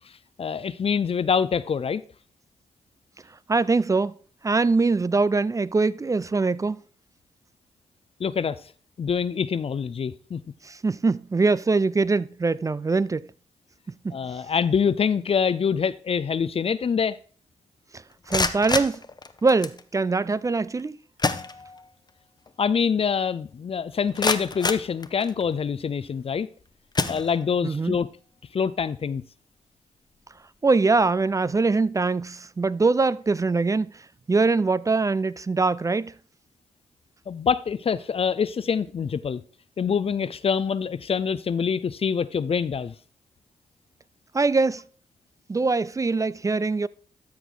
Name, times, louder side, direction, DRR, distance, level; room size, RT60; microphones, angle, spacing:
voice 1, 0.4-2.0 8.2-8.6 9.0-10.4 14.1-17.2 22.6-26.5 27.1-28.1 28.5-29.2 37.3-39.4 39.8-42.9, left 6 dB, 50° left, 0.5 m, -25 dB
voice 2, 3.5-4.1 4.4-6.8 10.6-13.3 14.0-14.1 17.9-19.0 19.4-21.0 27.6-28.0 30.6-34.0 34.3-36.1 44.3-44.8 45.5-46.9, right 3 dB, 25° right, 0.4 m, -23 dB
sound 1, 18.1-19.8 20.8-20.9 21.2-22.1 22.5-22.6 23.1-23.2 23.8-25.6 26.3-26.5 26.9-27.8, left 3 dB, 35° left, 0.9 m, -29 dB
13.0 x 4.6 x 3.9 m
supercardioid pair, 45°, 13 cm